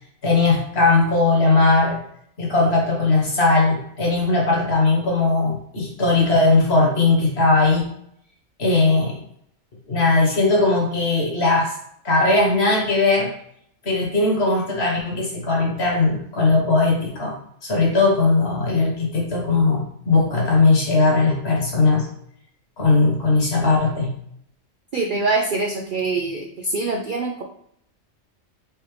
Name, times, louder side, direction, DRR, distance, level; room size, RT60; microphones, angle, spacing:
voice 1, 0.2-2.0 2.4-7.9 8.6-9.2 9.9-11.7 12.0-13.3 13.8-17.3 17.6-22.1 22.8-24.2, left 3 dB, 55° left, -2 dB, 1.4 m, -19 dB
voice 2, 24.9-27.4, right 3 dB, 60° right, 1 dB, 0.5 m, -24 dB
4.7 x 2.8 x 3.2 m, 0.68 s
omnidirectional pair, 1.3 m